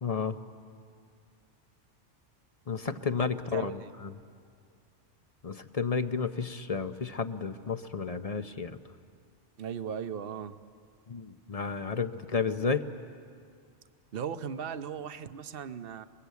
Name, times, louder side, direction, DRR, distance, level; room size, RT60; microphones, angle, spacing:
voice 1, 0.0-0.4 2.7-4.1 5.4-8.8 11.1-12.9, left 5 dB, 35° left, 10 dB, 0.8 m, -32 dB
voice 2, 3.2-3.9 9.6-10.6 14.1-16.1, right 7 dB, 55° right, 11 dB, 1.0 m, -38 dB
29.0 x 21.0 x 8.3 m, 2.2 s
omnidirectional pair, 1.2 m